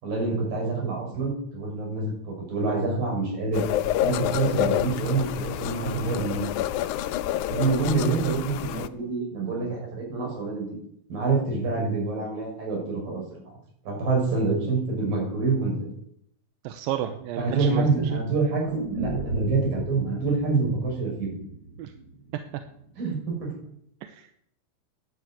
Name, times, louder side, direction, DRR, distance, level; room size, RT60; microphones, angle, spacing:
voice 1, 0.0-3.6 4.0-6.5 7.5-10.7 11.1-13.2 13.9-15.9 17.4-18.7 19.0-21.4 23.0-23.5, right 3 dB, 65° right, -1 dB, 7.7 m, -26 dB
sound 1, 3.5-8.9, left 12 dB, 80° left, 1.8 m, -28 dB
voice 2, 16.6-17.9 18.1-18.2 21.8-21.9 24.2-24.4, right 12 dB, 80° right, 8 dB, 2.5 m, -31 dB
sound 2, 18.6-22.7 23.0-23.1, right 3 dB, 25° right, 3.7 m, -35 dB
11.5 x 9.6 x 9.1 m, 0.71 s
omnidirectional pair, 4.2 m